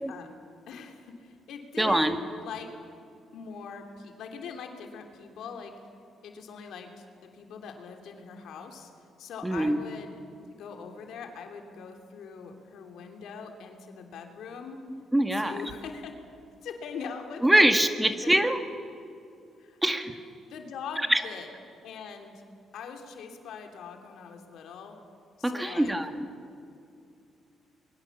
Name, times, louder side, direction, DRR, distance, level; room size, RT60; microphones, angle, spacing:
voice 1, 0.7-2.1 2.4-2.7 3.3-5.7 6.2-8.9 9.2-10.2 10.5-14.8 15.3-16.1 16.6-17.7 18.1-18.4 19.6-20.1 20.5-21.5 21.8-22.4 22.7-25.0 25.4-25.9, left 6 dB, 80° left, 4 dB, 3.0 m, -42 dB
voice 2, 1.8-2.2 9.4-9.8 14.9-15.6 17.4-18.6 19.8-20.1 21.1-21.2 25.4-26.3, right 1 dB, 10° right, 7 dB, 1.9 m, -23 dB
25.5 x 23.0 x 7.2 m, 2.5 s
cardioid pair, 75°, 0 cm